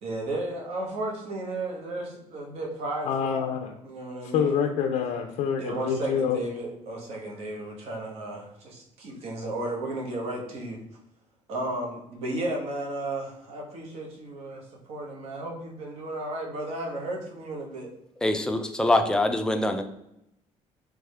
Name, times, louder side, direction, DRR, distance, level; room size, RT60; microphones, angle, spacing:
voice 1, 0.0-3.4 3.8-4.6 5.6-10.8 11.5-17.9, right 1 dB, 65° right, 0 dB, 1.1 m, -34 dB
voice 2, 3.1-3.7 4.3-6.4, left 7 dB, 80° left, 4 dB, 0.4 m, -26 dB
voice 3, 18.2-19.8, left 1 dB, 5° left, 5 dB, 0.4 m, -24 dB
3.5 x 3.4 x 3.3 m, 0.81 s
cardioid pair, 145°, 12 cm